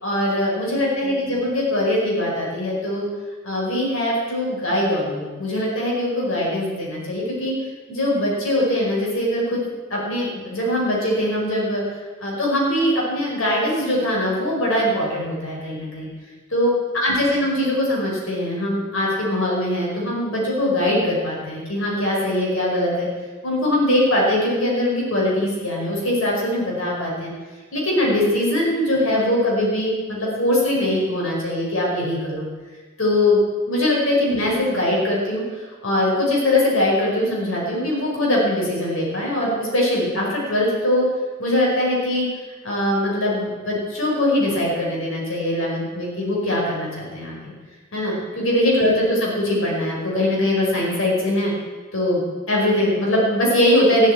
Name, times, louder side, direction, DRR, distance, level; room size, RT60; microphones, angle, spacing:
voice 1, 0.0-3.1 3.4-7.5 7.9-9.6 9.9-11.8 12.2-16.1 16.5-23.1 23.4-27.3 27.7-32.5 33.0-33.4 33.7-41.0 41.4-42.3 42.6-47.5 47.9-51.5 51.9-54.1, left 1 dB, 75° left, -3 dB, 5.2 m, -22 dB
15.0 x 8.1 x 8.7 m, 1.4 s
head